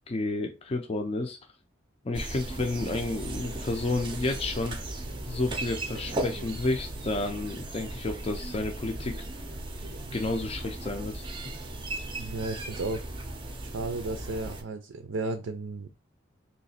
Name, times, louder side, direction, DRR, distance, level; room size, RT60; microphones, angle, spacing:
voice 1, 0.1-1.4 2.0-4.8 5.3-9.1 10.1-11.3, left 2 dB, 30° left, 3 dB, 0.4 m, -31 dB
sound 1, 2.1-14.6, right 2 dB, 25° right, 0.5 m, -37 dB
voice 2, 12.2-13.1 13.6-15.9, right 2 dB, 80° right, 7 dB, 0.5 m, -34 dB
3.2 x 2.8 x 4.1 m, 0.30 s
head